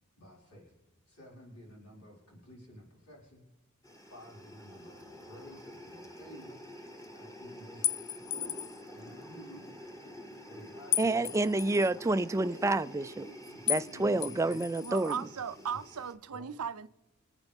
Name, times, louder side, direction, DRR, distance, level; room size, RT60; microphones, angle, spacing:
voice 1, 0.2-0.7 1.1-3.4 4.1-6.8 7.1-8.2 8.9-9.6 10.5-11.8 13.5-14.5 16.3-16.5, equal, 90° left, 5.1 m, -52 dB
sound 1, 3.8-16.1, equal, 15° left, 1.2 m, -49 dB
sound 2, 7.8-8.8 10.9-11.9 13.7-13.9 14.2-15.2, left 15 dB, 65° left, 0.3 m, -34 dB
sound 3, 8.2-16.0, equal, 45° left, 2.1 m, -53 dB
voice 2, 11.0-13.3 13.7-15.3, right 2 dB, 15° right, 0.3 m, -29 dB
voice 3, 14.8-16.9, right 7 dB, 85° right, 0.6 m, -37 dB
27.0 x 9.1 x 3.6 m
head